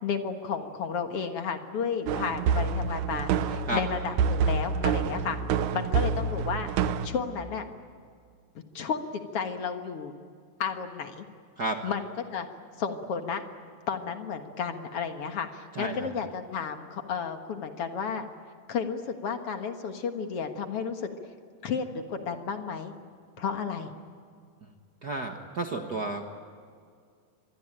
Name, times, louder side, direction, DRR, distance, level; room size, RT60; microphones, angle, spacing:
voice 1, 0.0-5.4 5.7-6.7 7.0-7.6 8.7-10.1 10.6-11.3 11.8-12.0 12.3-12.5 12.8-13.4 13.9-18.2 18.7-21.1 21.6-22.9 23.4-23.9, left 6 dB, 55° left, 6 dB, 2.0 m, -32 dB
sound 1, 2.1-7.1, right 6 dB, 70° right, 2.2 m, -27 dB
voice 2, 15.7-16.1 25.0-26.2, right 2 dB, 50° right, 4 dB, 1.2 m, -32 dB
26.0 x 21.5 x 8.9 m, 2.1 s
omnidirectional pair, 3.8 m